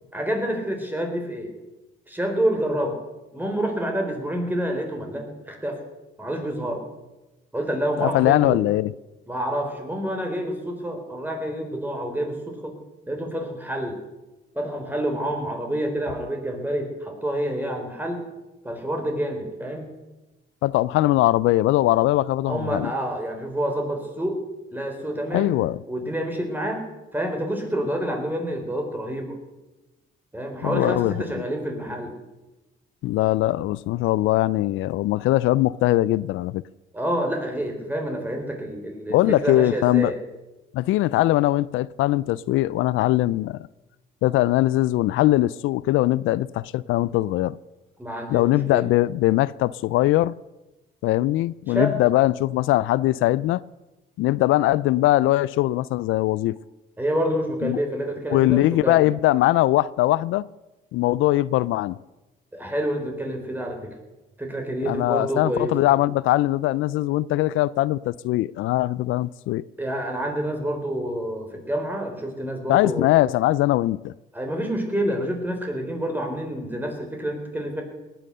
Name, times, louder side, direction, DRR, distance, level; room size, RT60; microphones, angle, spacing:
voice 1, 0.1-1.5 2.1-3.0 3.3-5.8 6.2-6.9 7.5-8.6 9.3-12.8 13.1-14.0 14.5-18.2 18.6-19.9 22.4-24.4 24.7-25.6 25.9-26.9 27.1-29.4 30.3-32.2 36.9-40.2 48.0-48.9 51.7-52.1 57.0-59.0 62.5-63.9 64.4-65.7 69.8-73.1 74.3-77.8, right 1 dB, 10° right, 4.0 m, -28 dB
voice 2, 8.0-8.9 20.6-22.9 25.3-25.8 30.6-31.1 33.0-36.6 39.1-40.1 40.7-43.6 44.2-47.6 48.3-50.3 51.0-53.6 54.2-56.6 57.6-57.8 58.3-60.5 60.9-62.0 64.9-69.6 72.7-74.1, left 16 dB, 85° left, 0.4 m, -21 dB
19.0 x 9.2 x 6.7 m
cardioid pair, 90°, 20 cm